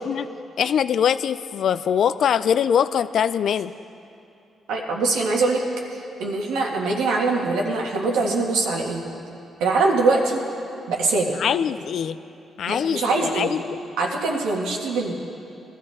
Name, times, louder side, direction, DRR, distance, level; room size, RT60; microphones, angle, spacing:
voice 1, 0.6-3.7 11.4-12.2 12.6-13.8, left 8 dB, 70° left, 14 dB, 0.4 m, -22 dB
voice 2, 4.7-5.6 5.9-9.0 9.6-10.4 10.9-11.3 12.7-13.5 14.0-15.1, right 3 dB, 90° right, -1 dB, 1.9 m, -23 dB
20.5 x 13.0 x 3.6 m, 2.7 s
cardioid pair, 70°, 0 cm